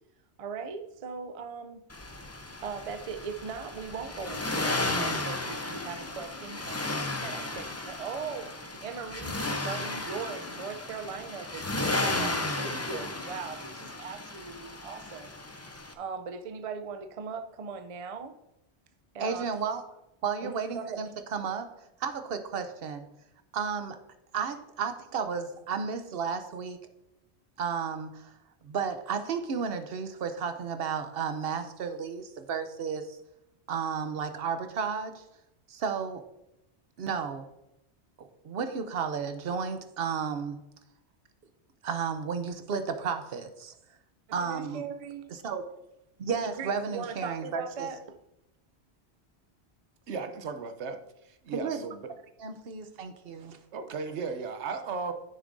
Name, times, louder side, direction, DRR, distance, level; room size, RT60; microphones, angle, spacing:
voice 1, 0.4-1.8 2.6-15.4 16.0-18.4 19.1-19.5 20.4-21.0 44.3-45.3 46.4-48.0, right 5 dB, 45° right, 8 dB, 0.5 m, -39 dB
Accelerating revving vroom, 1.9-15.9, left 2 dB, 20° left, 0.5 m, -34 dB
voice 2, 19.2-19.8 20.2-21.7 22.0-23.1 23.5-24.0 24.3-26.8 27.6-28.3 28.6-33.2 33.7-35.2 35.7-36.2 37.0-37.4 38.2-40.6 41.8-43.7 44.3-44.8 45.3-45.6 46.2-47.9 51.5-51.8 52.4-53.6, right 6 dB, 65° right, 9 dB, 0.9 m, -33 dB
voice 3, 50.1-51.0 51.2-52.1 53.7-55.1, right 5 dB, 90° right, 8 dB, 1.0 m, -35 dB
9.6 x 6.6 x 2.6 m, 0.84 s
omnidirectional pair, 1.1 m